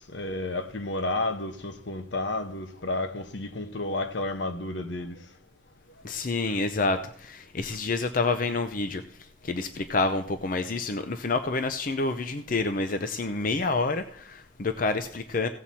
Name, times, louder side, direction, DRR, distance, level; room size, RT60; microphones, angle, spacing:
voice 1, 0.1-5.2, left 2 dB, 75° left, 1.0 m, -31 dB
voice 2, 6.0-15.5, left 3 dB, 45° left, 0.6 m, -28 dB
16.5 x 7.5 x 4.2 m
head